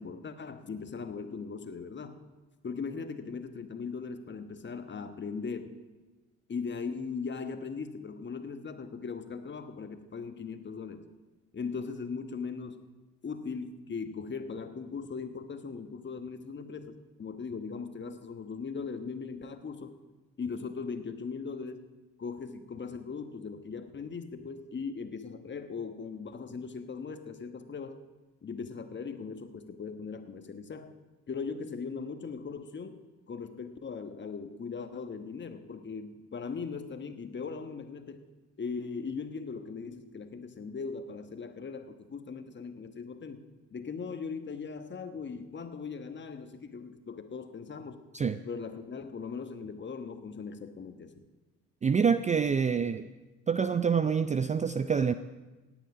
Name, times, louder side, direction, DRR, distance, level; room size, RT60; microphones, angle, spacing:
voice 1, 0.0-2.2 2.6-5.7 6.5-11.0 11.5-12.9 13.2-20.0 20.4-21.9 22.2-28.0 28.4-30.9 31.3-33.0 33.3-38.3 38.6-43.5 43.7-48.0 48.4-51.1, left 5 dB, 30° left, 8 dB, 1.2 m, -39 dB
voice 2, 51.8-53.1 53.5-55.1, right 6 dB, 20° right, 12 dB, 0.4 m, -26 dB
17.0 x 9.3 x 4.9 m, 1.2 s
hypercardioid pair, 60°, 36 cm